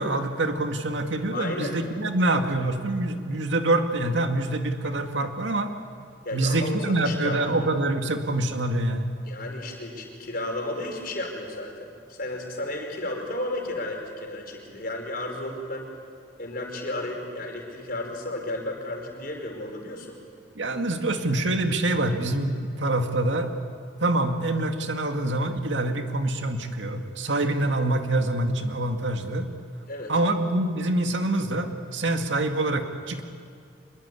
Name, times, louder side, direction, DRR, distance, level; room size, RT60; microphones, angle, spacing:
voice 1, 0.0-5.7 6.3-9.1 20.6-23.6 24.0-29.5 30.1-33.2, right 2 dB, 90° right, 5 dB, 2.1 m, -25 dB
voice 2, 1.3-1.8 6.2-7.4 9.2-15.9 16.4-20.2 29.9-30.1, left 1 dB, 55° left, 2 dB, 5.0 m, -33 dB
25.0 x 22.0 x 8.5 m, 2.4 s
head